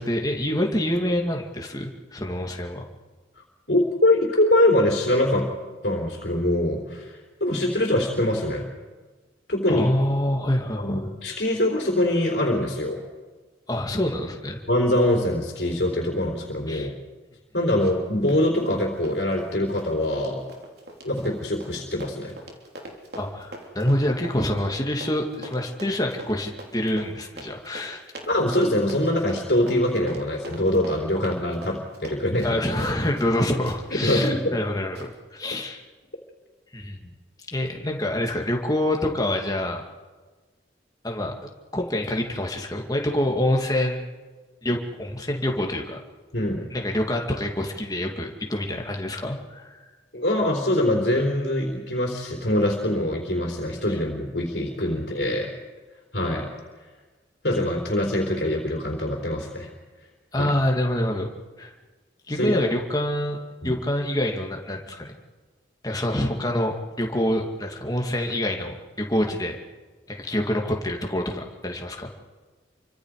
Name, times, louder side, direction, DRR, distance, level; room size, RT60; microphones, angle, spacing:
voice 1, 0.0-2.9 9.7-11.0 13.7-14.6 16.7-16.9 23.2-28.0 32.4-35.8 36.7-37.1 37.5-39.8 41.0-41.3 41.7-44.0 44.6-46.0 46.7-49.8 60.3-61.3 61.6-61.7 62.3-65.1 65.8-69.6 70.1-72.2, left 1 dB, 20° left, 1 dB, 2.5 m, -26 dB
voice 2, 3.7-5.5 5.8-7.1 7.4-8.7 9.5-9.9 10.8-13.0 14.7-16.9 17.5-20.4 21.0-22.3 28.3-32.6 33.9-34.5 46.3-46.7 50.1-55.5 56.1-56.5 57.4-59.7 60.4-60.5 62.4-62.6 63.6-63.8, left 1 dB, 65° left, 0 dB, 3.8 m, -23 dB
Run, 17.8-18.0 18.3-33.4 33.7-33.8 34.2-34.3 34.9-35.1, right 1 dB, 60° right, 3.6 m, -42 dB
28.5 x 25.0 x 5.0 m, 1.3 s
head